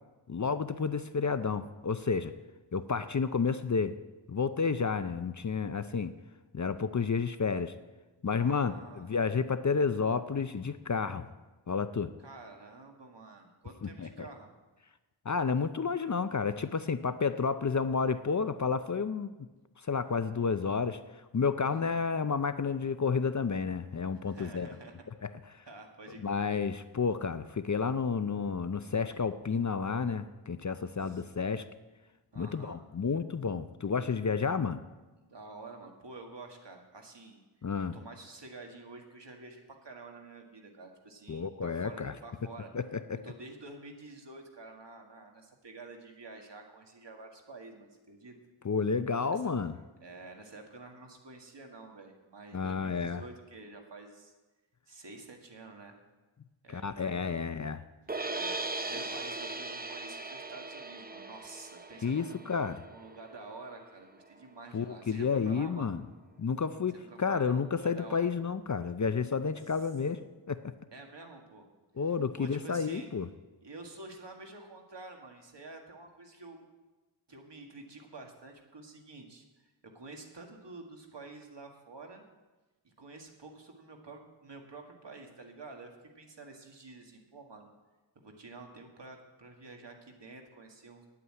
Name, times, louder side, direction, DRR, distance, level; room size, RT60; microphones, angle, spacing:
voice 1, 0.3-2.3 2.7-4.0 4.3-6.1 6.5-7.7 8.2-11.3 11.7-12.1 13.8-14.1 15.3-19.3 19.9-21.0 21.3-24.7 25.2-25.3 26.2-31.6 32.4-34.8 37.6-38.0 41.3-42.1 42.7-43.2 48.6-49.7 52.5-53.2 56.7-57.8 62.0-62.8 64.7-66.0 66.4-70.7 72.0-73.3, left 5 dB, 40° left, 12 dB, 0.5 m, -31 dB
voice 2, 8.3-9.1 12.2-14.5 21.6-22.1 24.0-24.9 25.7-26.5 31.0-31.2 32.3-32.8 35.2-37.4 37.8-42.7 43.2-48.4 49.3-49.4 50.0-54.3 54.9-56.0 56.6-57.5 58.3-58.6 58.9-65.9 66.9-68.3 70.9-71.7 72.4-73.1 73.6-76.7 77.3-79.4 79.9-82.2 82.8-87.7 88.2-91.1, right 3 dB, 65° right, 2 dB, 1.9 m, -49 dB
sound 1, 58.1-64.2, right 2 dB, 20° right, 0.6 m, -39 dB
9.4 x 8.4 x 8.6 m, 1.2 s
wide cardioid pair, 80°, 46 cm